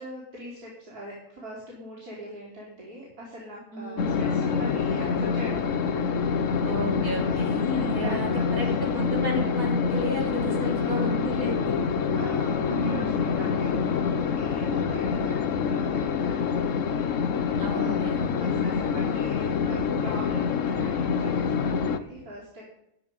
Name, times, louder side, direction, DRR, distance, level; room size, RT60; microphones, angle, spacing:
voice 1, 0.0-6.7 7.2-7.6 8.0-9.1 10.8-11.4 12.1-22.6, equal, 85° right, -5 dB, 4.0 m, -42 dB
voice 2, 3.7-4.2 6.6-11.8 12.6-13.2 17.6-18.8, equal, 70° right, -4 dB, 6.1 m, -33 dB
sound 1, 4.0-22.0, left 6 dB, 60° left, 1.2 m, -26 dB
16.5 x 10.0 x 5.3 m, 0.80 s
omnidirectional pair, 1.6 m